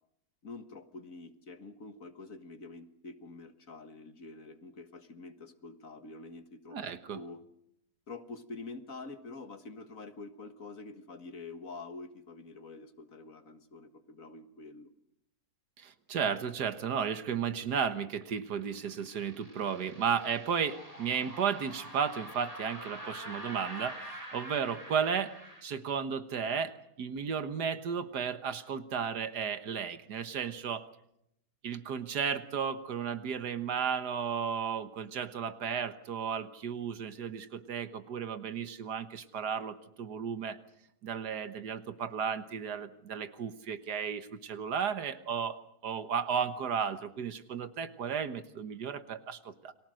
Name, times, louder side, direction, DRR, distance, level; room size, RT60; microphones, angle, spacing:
voice 1, 0.4-6.8 7.1-7.4 8.1-14.9, left 3 dB, 55° left, 9 dB, 2.0 m, -46 dB
voice 2, 6.7-7.2 15.8-25.3 25.6-30.9 31.6-40.6 41.0-49.7, right 7 dB, 80° right, 11 dB, 1.9 m, -34 dB
sound 1, 18.2-25.6, right 1 dB, 20° right, 5.7 m, -46 dB
30.0 x 23.5 x 6.4 m, 0.78 s
omnidirectional pair, 1.7 m